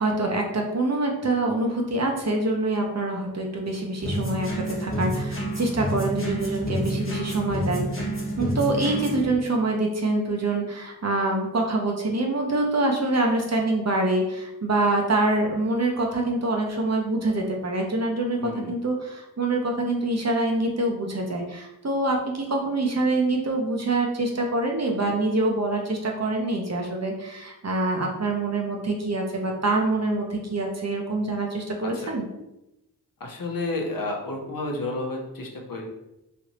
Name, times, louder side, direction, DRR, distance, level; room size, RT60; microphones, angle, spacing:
voice 1, 0.0-7.9 8.4-18.4 18.7-32.2, right 2 dB, 40° right, 1 dB, 0.8 m, -25 dB
sound 1, 4.0-9.2, right 1 dB, 35° left, 1.3 m, -29 dB
voice 2, 18.4-18.7 31.8-32.1 33.2-35.9, left 2 dB, 60° left, 1 dB, 0.8 m, -31 dB
3.2 x 2.7 x 3.0 m, 0.90 s
cardioid pair, 45°, 39 cm